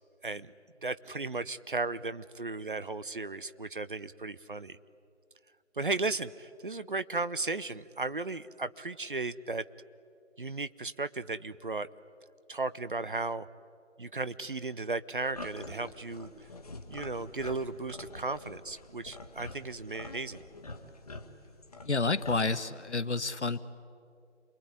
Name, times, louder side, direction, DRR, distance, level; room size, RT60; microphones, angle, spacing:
voice 1, 0.8-4.8 5.7-9.6 10.4-11.9 12.5-13.5 14.0-16.5 16.9-20.5, right 3 dB, 45° right, 15 dB, 0.7 m, -35 dB
sound 1, 15.3-22.4, left 2 dB, 30° left, 1.6 m, -46 dB
voice 2, 21.8-23.6, left 3 dB, 70° left, 13 dB, 1.3 m, -29 dB
28.0 x 22.0 x 9.6 m, 2.5 s
figure-of-eight pair, 160°, 36 cm